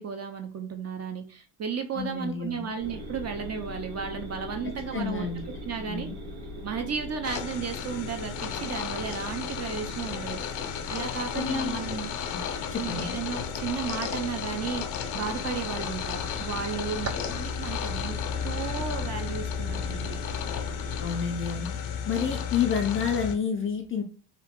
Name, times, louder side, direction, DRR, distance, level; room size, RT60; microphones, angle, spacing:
voice 1, 0.0-5.3 5.6-6.1 6.6-12.1 12.8-14.8 15.1-18.2 18.4-20.2, right 6 dB, 35° right, 6 dB, 0.5 m, -34 dB
voice 2, 1.9-2.7 4.9-5.4 5.9-6.2 11.3-11.8 12.3-12.4 12.7-13.1 21.0-21.7 22.1-24.0, left 7 dB, 30° left, 4 dB, 0.3 m, -29 dB
sound 1, 2.8-21.1, equal, 80° right, 1.2 m, -40 dB
sound 2, 7.2-23.4, left 8 dB, 75° left, 0.6 m, -34 dB
2.9 x 2.3 x 3.5 m, 0.40 s
cardioid pair, 100°, 48 cm